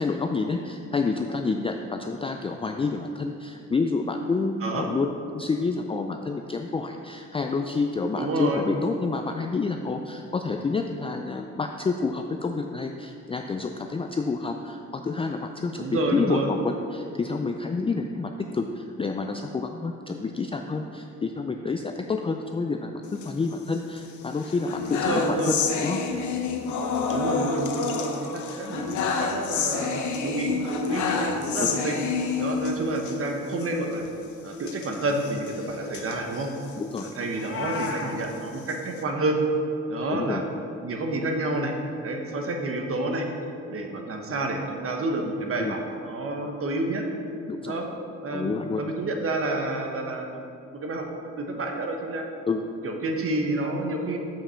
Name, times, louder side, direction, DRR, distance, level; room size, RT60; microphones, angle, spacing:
voice 1, 0.0-5.1 5.3-26.0 36.8-37.1 40.1-40.4 45.6-45.7 47.5-47.8 48.3-48.8 52.5-52.7, left 4 dB, 20° left, 4 dB, 0.4 m, -28 dB
voice 2, 8.2-8.6 15.8-16.5 24.9-25.5 27.1-31.9 32.4-34.0 34.4-36.5 37.0-39.4 39.9-40.4 40.8-41.7 42.0-43.3 43.7-45.8 46.0-47.0 47.6-47.9 48.2-50.4 50.7-51.0 51.4-52.2 52.8-54.2, right 2 dB, 45° right, 2 dB, 1.2 m, -29 dB
sound 1, 23.1-24.0 24.4-33.2 33.5-33.7 33.9-34.1 34.6-37.1 37.6-39.0, left 5 dB, 75° left, 0.9 m, -29 dB
Meow, 37.3-38.1, left 5 dB, 45° left, 0.9 m, -33 dB
7.4 x 5.4 x 5.7 m, 2.6 s
cardioid pair, 90°, 30 cm